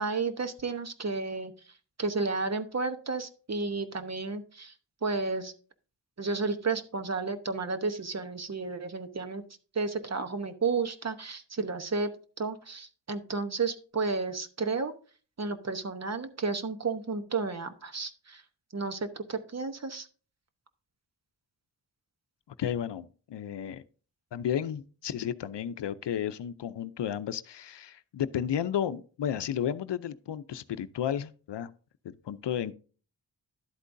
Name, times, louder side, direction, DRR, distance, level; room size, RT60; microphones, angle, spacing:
voice 1, 0.0-1.5 2.0-4.7 5.0-5.5 6.2-9.4 9.7-12.1 12.4-14.9 15.4-18.4 18.7-20.1, right 4 dB, 40° right, 1.0 m, -32 dB
voice 2, 22.6-23.8 24.3-31.7 32.0-32.7, left 9 dB, 80° left, 0.6 m, -33 dB
11.5 x 8.3 x 2.6 m
wide cardioid pair, 145°, 41 cm